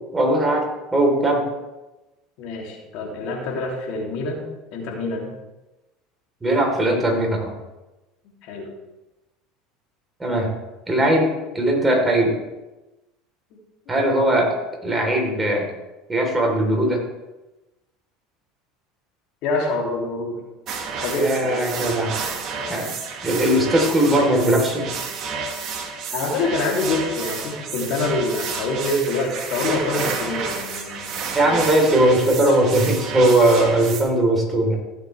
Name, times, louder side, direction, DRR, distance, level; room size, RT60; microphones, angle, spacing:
voice 1, 0.1-1.4 6.4-7.5 10.2-10.5 10.9-12.4 13.9-14.5 14.8-15.7 16.1-17.0 21.2-22.1 22.7-22.9 23.2-24.9 31.3-34.8, right 1 dB, 15° right, 1 dB, 3.8 m, -19 dB
voice 2, 2.4-5.3 8.4-8.7 19.4-20.4 21.0-21.8 22.6-22.7 26.1-31.6, left 2 dB, 60° left, 0 dB, 3.0 m, -26 dB
sound 1, 20.7-34.0, right 5 dB, 50° right, 1.9 m, -30 dB
16.0 x 7.5 x 3.4 m, 1.0 s
hypercardioid pair, 80°, 0 cm